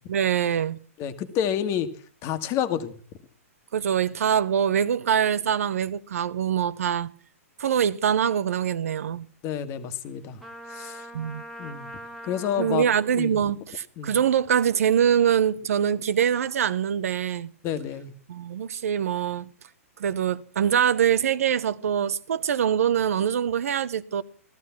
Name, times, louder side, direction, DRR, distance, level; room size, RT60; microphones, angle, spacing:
voice 1, 0.1-0.8 3.7-7.1 7.6-9.3 11.1-11.4 12.6-17.5 18.3-19.5 20.0-24.2, right 8 dB, 70° right, 0.9 m, -24 dB
voice 2, 1.0-1.9 2.2-3.0 9.4-10.4 10.7-11.1 11.6-11.9 12.2-12.9 13.1-13.4 14.0-14.2 17.6-18.1, left 9 dB, 35° left, 1.6 m, -29 dB
Trumpet, 10.4-12.9, equal, ahead, 1.6 m, -42 dB
15.0 x 14.0 x 5.8 m
hypercardioid pair, 125°, 8 cm